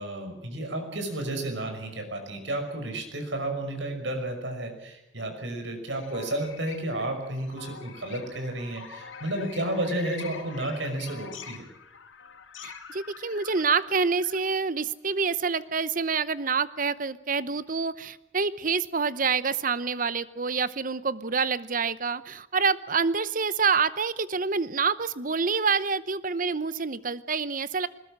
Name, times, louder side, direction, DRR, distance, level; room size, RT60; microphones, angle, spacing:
voice 1, 0.0-11.6, right 1 dB, 70° right, 5 dB, 5.8 m, -32 dB
sound 1, 5.9-14.6, left 6 dB, 80° left, 2.7 m, -45 dB
voice 2, 12.6-27.9, right 5 dB, 45° right, 15 dB, 0.9 m, -27 dB
21.0 x 20.0 x 7.5 m, 0.90 s
head